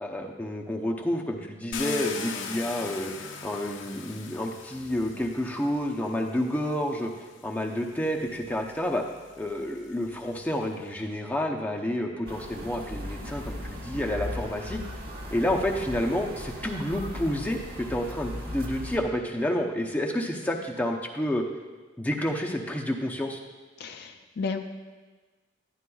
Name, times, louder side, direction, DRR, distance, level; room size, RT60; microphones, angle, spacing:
voice 1, 0.0-3.1 3.4-7.1 7.4-9.0 9.4-14.8 15.3-21.4 22.0-23.4, left 1 dB, 10° left, 1 dB, 0.7 m, -29 dB
Car, 1.7-5.8 6.8-6.9 7.4-10.7, left 5 dB, 90° left, 0.7 m, -39 dB
sound 1, 12.3-19.0, left 1 dB, 55° right, 1.2 m, -37 dB
voice 2, 23.8-24.6, left 4 dB, 55° left, 6 dB, 0.4 m, -33 dB
11.0 x 10.5 x 2.3 m, 1.3 s
head